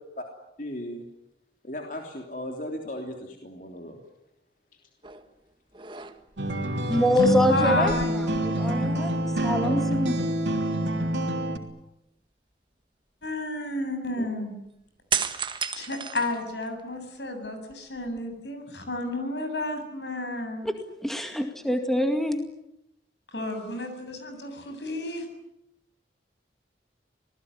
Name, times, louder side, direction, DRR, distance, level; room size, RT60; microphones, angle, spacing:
voice 1, 0.6-1.0 1.6-4.0 9.6-10.0 14.2-14.3, left 1 dB, 45° left, 2 dB, 3.3 m, -37 dB
sound 1, 5.0-5.3 5.7-6.5 7.7-9.0 9.3-9.5 15.1-16.9 17.4-18.3, right 6 dB, 25° right, 1.6 m, -33 dB
sound 2, 6.4-11.6, right 1 dB, 85° right, 3.3 m, -26 dB
voice 2, 6.9-10.2 20.6-20.7 21.0-22.4, left 1 dB, ahead, 5 dB, 2.1 m, -25 dB
voice 3, 7.5-8.2 13.2-14.6 15.7-20.7 23.3-25.3, left 2 dB, 75° left, 7 dB, 7.7 m, -31 dB
26.5 x 19.5 x 9.9 m, 0.82 s
head